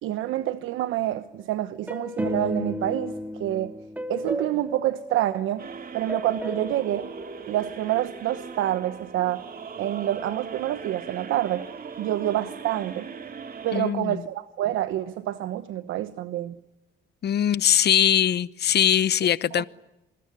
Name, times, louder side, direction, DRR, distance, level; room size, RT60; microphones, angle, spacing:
voice 1, 0.0-3.7 4.1-5.6 5.9-7.1 7.5-9.4 9.8-11.7 12.0-13.1 13.6-16.6 19.5-19.6, right 13 dB, 90° right, 1.1 m, -27 dB
sound 1, 1.9-5.7 6.1-8.1, left 1 dB, 10° right, 2.4 m, -34 dB
sound 2, 5.6-13.8, right 5 dB, 45° right, 2.5 m, -39 dB
voice 2, 13.7-14.2 17.2-19.6, left 10 dB, 55° left, 0.9 m, -21 dB
28.0 x 21.5 x 9.9 m
cardioid pair, 90°, 20 cm